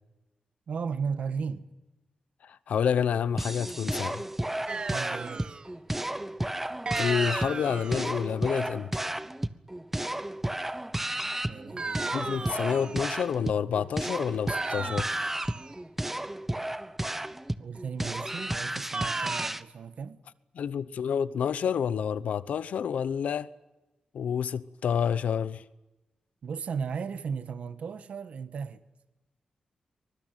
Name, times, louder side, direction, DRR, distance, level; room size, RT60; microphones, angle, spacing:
voice 1, 0.7-1.7 4.9-5.6 8.8-8.9 11.5-12.0 12.3-13.0 17.6-20.2 26.4-28.9, right 6 dB, 70° right, 1.4 m, -36 dB
voice 2, 2.4-4.2 6.9-9.1 12.1-15.1 20.5-23.5 24.1-25.6, left 7 dB, 90° left, 0.9 m, -29 dB
sound 1, 3.4-19.6, right 1 dB, 10° right, 1.0 m, -33 dB
sound 2, 4.7-5.7 6.9-8.2 11.8-13.1 14.5-15.8 18.9-19.5, right 4 dB, 40° right, 1.5 m, -35 dB
24.0 x 21.0 x 9.2 m
cardioid pair, 95°, 2 cm